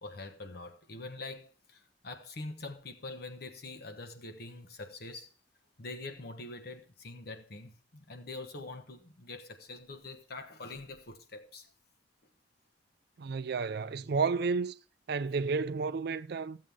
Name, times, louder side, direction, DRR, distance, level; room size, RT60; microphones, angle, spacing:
voice 1, 0.0-5.3 5.8-11.7, left 2 dB, 55° left, 1.2 m, -44 dB
voice 2, 13.2-14.7 15.1-16.6, right 4 dB, 60° right, 0.4 m, -31 dB
14.0 x 7.5 x 3.5 m
head